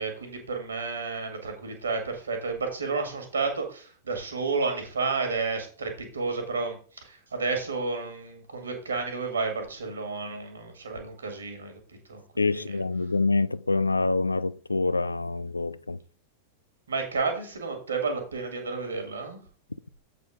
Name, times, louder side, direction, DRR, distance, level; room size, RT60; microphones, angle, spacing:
voice 1, 0.0-12.2 12.5-12.8 16.9-19.4, right 4 dB, 70° right, 2.0 m, -31 dB
voice 2, 12.4-16.0, left 3 dB, 80° left, 0.3 m, -26 dB
7.7 x 4.3 x 4.8 m
figure-of-eight pair, 90°, 0 cm